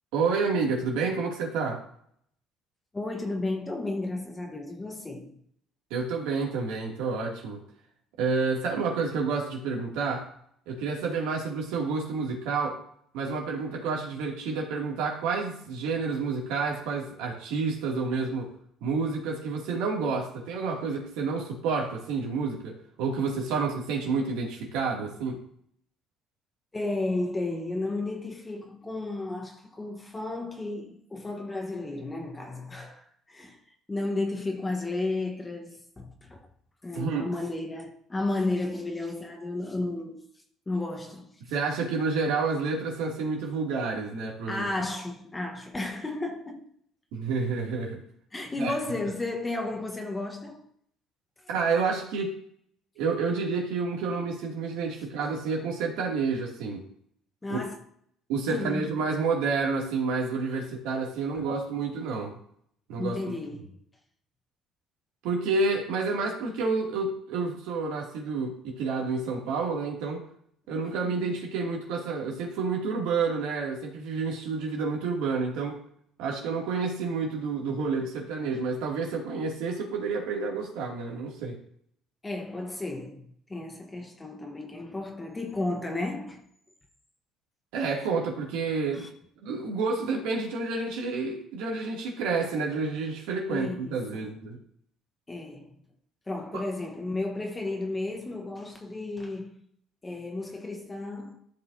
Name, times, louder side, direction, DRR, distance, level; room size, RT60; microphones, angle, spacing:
voice 1, 0.1-1.8 5.9-7.6 8.2-10.3 10.7-12.8 13.1-18.5 18.8-25.4 37.0-37.3 41.5-44.7 47.1-48.0 48.6-48.8 51.5-52.3 53.0-56.9 57.5-57.6 58.3-62.4 62.9-63.4 65.2-70.2 70.7-75.8 76.2-81.6 87.7-89.1 89.4-94.6 96.5-96.6, right 4 dB, 85° right, 2.5 m, -29 dB
voice 2, 2.9-5.3 26.7-33.6 33.9-36.5 36.8-40.2 40.7-41.3 44.5-46.7 48.3-50.7 57.4-57.7 58.5-58.9 61.3-61.4 63.0-63.8 71.0-71.3 82.2-83.2 83.5-86.4 88.9-89.1 93.5-94.3 95.3-95.8 96.3-99.6 100.0-101.4, left 2 dB, 15° left, 1.2 m, -33 dB
13.5 x 5.4 x 2.7 m
cardioid pair, 110°, 0 cm